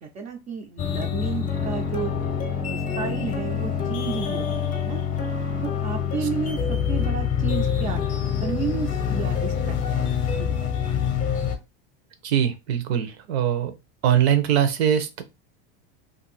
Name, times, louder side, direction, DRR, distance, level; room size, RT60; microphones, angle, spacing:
voice 1, 0.0-2.1 2.6-5.0 5.6-9.7 10.3-10.7, right 6 dB, 25° right, 0.3 m, -32 dB
sound 1, 0.8-11.6, left 7 dB, 25° left, 0.6 m, -26 dB
voice 2, 12.2-13.7 14.0-15.2, right 9 dB, 90° right, 0.8 m, -22 dB
2.6 x 2.6 x 4.0 m
supercardioid pair, 160°, 31 cm